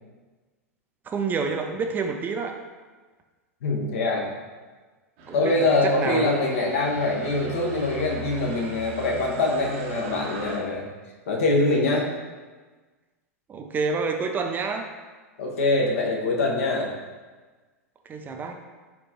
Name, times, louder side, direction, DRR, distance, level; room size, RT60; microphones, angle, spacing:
voice 1, 1.1-2.5 5.3-5.5 5.8-6.5 13.5-14.9 18.1-18.5, right 4 dB, 20° right, 4 dB, 0.4 m, -28 dB
voice 2, 3.6-4.3 5.3-10.9 11.3-12.1 15.4-16.9, left 2 dB, 65° left, -1 dB, 1.0 m, -24 dB
sound 1, 5.2-10.6, right 1 dB, 50° right, 0.9 m, -39 dB
4.4 x 4.2 x 2.9 m, 1.3 s
figure-of-eight pair, 95°, 8 cm